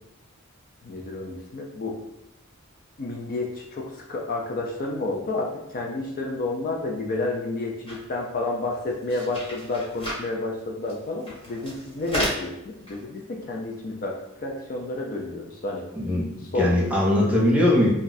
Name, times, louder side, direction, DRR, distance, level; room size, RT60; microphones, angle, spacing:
voice 1, 0.8-2.0 3.0-14.2 14.4-15.8 16.5-16.7 17.2-17.3 17.6-17.7, left 2 dB, 40° left, 0 dB, 0.4 m, -30 dB
sound 1, 7.9-8.0 8.4-8.5 8.7-10.2 10.9-11.0 11.2-12.4 12.9-13.0, equal, 25° left, 1.2 m, -32 dB
voice 2, 16.0-17.9, left 1 dB, 5° right, -5 dB, 0.7 m, -21 dB
2.6 x 2.3 x 3.9 m, 0.87 s
head